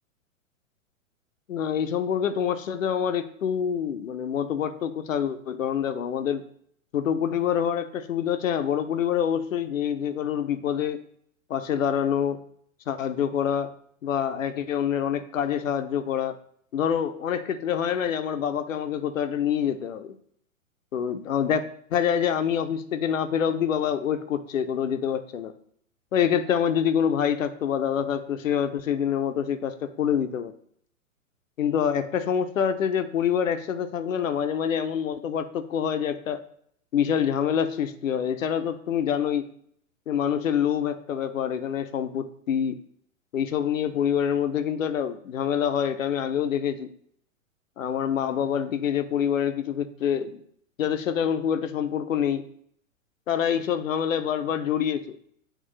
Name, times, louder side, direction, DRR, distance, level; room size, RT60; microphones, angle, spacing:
voice 1, 1.5-6.4 6.9-11.0 11.5-12.4 12.9-13.7 14.0-16.4 16.7-20.2 20.9-21.6 21.9-25.5 26.1-30.5 31.6-36.4 36.9-39.4 40.1-42.8 43.3-46.9 47.8-50.4 50.8-52.4 53.3-55.0, left 8 dB, 70° left, 10 dB, 0.8 m, -26 dB
8.8 x 3.3 x 3.2 m, 0.66 s
figure-of-eight pair, 110°, 41 cm